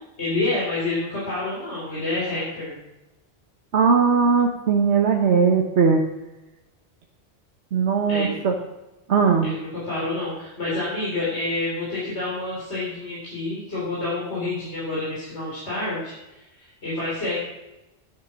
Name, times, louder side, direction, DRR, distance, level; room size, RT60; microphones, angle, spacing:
voice 1, 0.2-2.7 8.1-8.4 9.4-17.4, left 2 dB, 80° left, -8 dB, 4.4 m, -28 dB
voice 2, 3.7-6.0 7.7-8.5 9.1-9.5, right 5 dB, 80° right, 2 dB, 1.4 m, -19 dB
10.5 x 9.6 x 6.2 m, 0.99 s
omnidirectional pair, 1.1 m